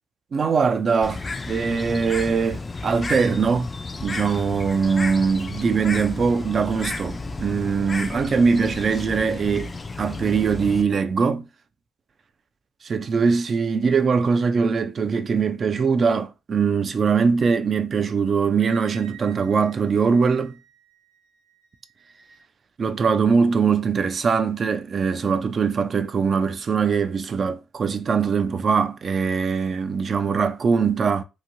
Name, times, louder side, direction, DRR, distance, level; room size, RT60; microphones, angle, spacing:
voice 1, 0.3-1.2 1.5-3.7 4.0-9.7 10.0-11.5 12.8-20.6 22.8-31.2, right 5 dB, 45° right, 0.4 m, -22 dB
Bird, 1.0-10.8, left 3 dB, 30° left, 0.3 m, -33 dB
Wind instrument woodwind instrument, 18.6-22.4, right 8 dB, 65° right, 1.1 m, -50 dB
3.0 x 2.6 x 2.6 m
cardioid pair, 90°, 0 cm